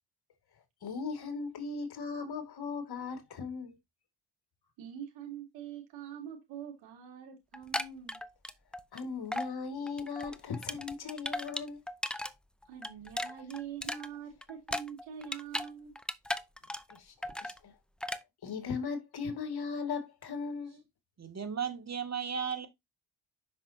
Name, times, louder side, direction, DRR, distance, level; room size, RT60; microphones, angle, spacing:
voice 1, 0.8-3.7 8.9-11.8 16.9-17.7 18.4-20.8, left 5 dB, 55° left, 2.3 m, -38 dB
voice 2, 4.8-8.2 12.7-16.0, right 8 dB, 80° right, 3.6 m, -44 dB
sound 1, 7.5-9.0 9.3-9.5 9.9-12.3 12.6-15.7 16.0-17.0 17.2-17.6 18.0-18.2, left 1 dB, ahead, 0.7 m, -37 dB
voice 3, 21.2-22.7, right 7 dB, 35° right, 2.2 m, -35 dB
7.6 x 6.0 x 2.8 m
supercardioid pair, 60°, 45 cm